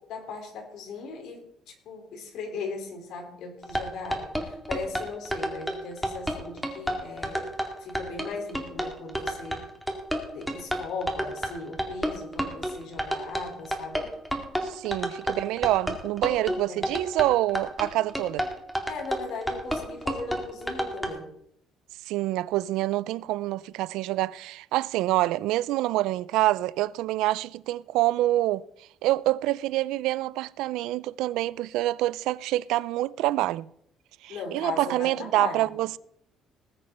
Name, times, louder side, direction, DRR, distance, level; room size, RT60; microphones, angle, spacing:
voice 1, 0.1-7.5 7.8-9.6 10.3-14.1 16.7-16.9 18.9-21.3 34.3-35.7, left 4 dB, 70° left, 4.0 m, -38 dB
sound 1, 3.6-21.1, equal, ahead, 2.1 m, -30 dB
voice 2, 14.6-18.5 22.1-28.7 29.0-33.7 34.2-36.0, right 16 dB, 85° right, 0.4 m, -26 dB
19.5 x 6.6 x 5.4 m
cardioid pair, 125°, 0 cm